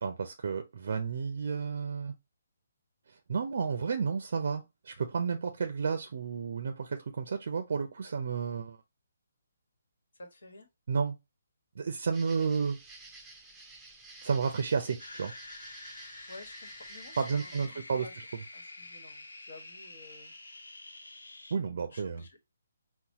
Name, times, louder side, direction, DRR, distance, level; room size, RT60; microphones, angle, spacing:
voice 1, 0.0-2.1 3.1-8.8 10.9-11.2 11.8-12.8 14.2-15.3 17.2-18.1 21.5-22.2, right 5 dB, 60° right, 0.5 m, -32 dB
voice 2, 10.1-10.7 16.3-18.1 18.5-20.3 21.9-22.4, left 2 dB, 70° left, 1.2 m, -51 dB
sound 1, 12.1-17.7, right 3 dB, 10° right, 0.5 m, -51 dB
sound 2, 15.0-21.6, left 2 dB, 90° left, 0.8 m, -47 dB
4.0 x 2.1 x 2.8 m
hypercardioid pair, 150°, 0 cm